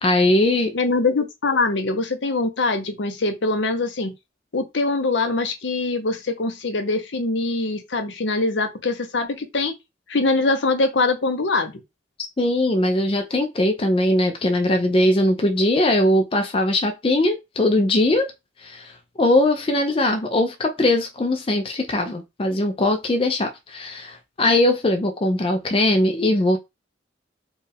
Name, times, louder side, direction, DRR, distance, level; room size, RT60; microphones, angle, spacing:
voice 1, 0.0-0.7 12.4-18.3 18.6-26.6, left 1 dB, 30° left, 0.4 m, -20 dB
voice 2, 0.7-4.1 4.5-9.7 10.1-11.8, left 3 dB, 70° left, 0.7 m, -23 dB
4.4 x 2.4 x 3.4 m
head